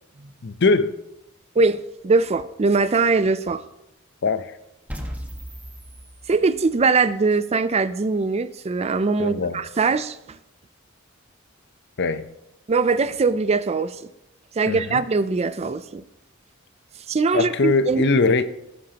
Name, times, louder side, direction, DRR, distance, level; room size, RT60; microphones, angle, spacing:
voice 1, 0.4-0.9 4.2-4.5 9.2-9.6 12.0-12.3 14.7-15.0 17.3-18.5, left 3 dB, 55° left, 0.7 m, -21 dB
voice 2, 1.6-3.6 6.3-10.4 12.7-14.1 14.5-16.0 17.1-18.0, right 4 dB, 30° right, 0.4 m, -21 dB
sound 1, 4.9-6.9, equal, 10° right, 1.4 m, -37 dB
18.0 x 9.9 x 2.9 m
head